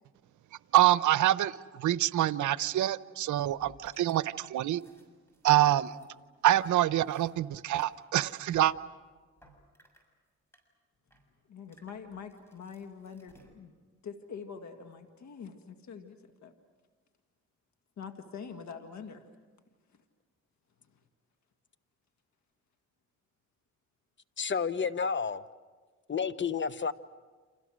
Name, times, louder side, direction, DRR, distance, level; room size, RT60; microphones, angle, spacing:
voice 1, 0.7-4.8 5.4-6.0 6.4-8.7, right 14 dB, 80° right, 0.8 m, -26 dB
sound 1, 3.3-4.2 4.5-7.3 7.6-10.1 10.5-10.6 10.9-11.2 11.6-13.9, right 1 dB, 10° left, 6.7 m, -62 dB
voice 2, 11.5-13.7 14.0-16.5 18.0-19.2, left 6 dB, 70° left, 1.9 m, -44 dB
voice 3, 24.4-25.4 26.1-26.9, left 6 dB, 40° left, 1.1 m, -30 dB
30.0 x 27.0 x 6.4 m
cardioid pair, 75°, 29 cm